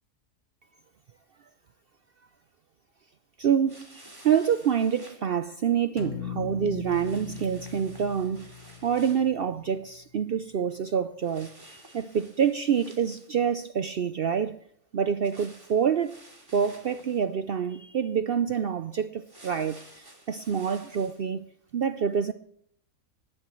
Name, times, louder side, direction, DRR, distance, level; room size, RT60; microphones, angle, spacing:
voice 1, 3.4-8.5 8.8-14.6 14.9-16.2 16.5-21.5 21.7-22.3, right 7 dB, 55° right, 0.7 m, -27 dB
sound 1, 3.7-5.2 6.8-9.3 11.2-13.5 15.2-17.3 19.2-21.2, right 1 dB, 15° right, 2.9 m, -52 dB
sound 2, 6.0-10.2, left 8 dB, 70° left, 1.3 m, -40 dB
18.5 x 12.5 x 3.1 m
omnidirectional pair, 1.4 m